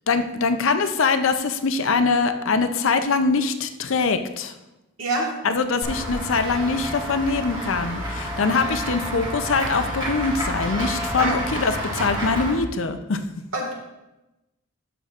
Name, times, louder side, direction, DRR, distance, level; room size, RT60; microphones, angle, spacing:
voice 1, 0.1-4.5 5.4-13.2, left 4 dB, 65° left, 9 dB, 0.5 m, -23 dB
voice 2, 5.0-5.3 11.2-11.4 13.5-13.7, right 2 dB, 65° right, 0 dB, 1.9 m, -25 dB
Run / Walk footsteps / Bell, 5.8-12.5, equal, 20° right, 1.7 m, -29 dB
11.5 x 6.8 x 2.5 m, 0.98 s
head